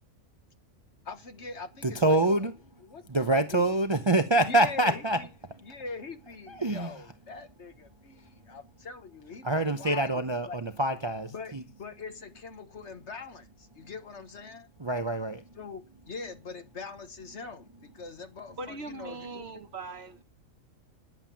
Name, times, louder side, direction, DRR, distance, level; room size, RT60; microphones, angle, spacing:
voice 1, 1.1-2.4 2.8-3.0 3.3-3.6 4.4-5.3 5.6-10.6 11.3-14.7 15.6-19.5, left 4 dB, 60° left, 1.6 m, -42 dB
voice 2, 1.8-2.5 3.1-5.2 6.5-6.9 9.4-11.6 14.8-15.4, right 2 dB, 25° right, 0.7 m, -26 dB
voice 3, 18.6-20.2, right 3 dB, 55° right, 1.3 m, -40 dB
11.0 x 7.5 x 7.4 m
omnidirectional pair, 1.4 m